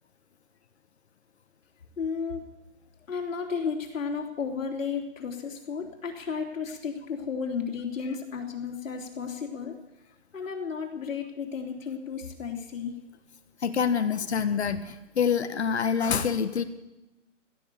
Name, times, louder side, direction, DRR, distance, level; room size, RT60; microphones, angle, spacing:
voice 1, 2.0-2.4 3.1-9.8 10.3-12.9, left 6 dB, 90° left, 2 dB, 3.5 m, -33 dB
voice 2, 13.6-16.6, left 7 dB, 60° left, 9 dB, 1.1 m, -26 dB
16.5 x 12.0 x 7.1 m, 1.0 s
hypercardioid pair, 175°, 38 cm